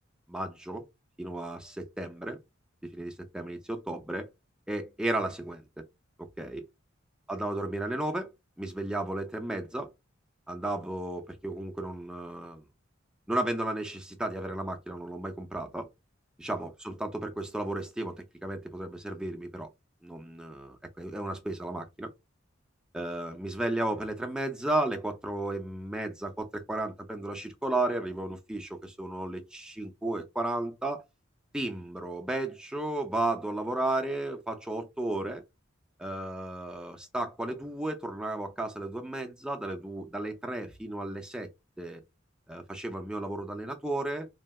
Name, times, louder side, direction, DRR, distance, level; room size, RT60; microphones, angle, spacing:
voice 1, 0.3-0.8 1.2-2.4 2.8-4.3 4.7-5.8 6.2-6.7 7.3-8.3 8.6-9.9 10.5-12.7 13.3-15.9 16.4-19.7 20.0-22.1 22.9-31.0 31.5-35.4 36.0-41.5 41.8-42.0 42.5-44.3, right 1 dB, 5° right, 0.4 m, -34 dB
3.2 x 2.7 x 2.3 m
head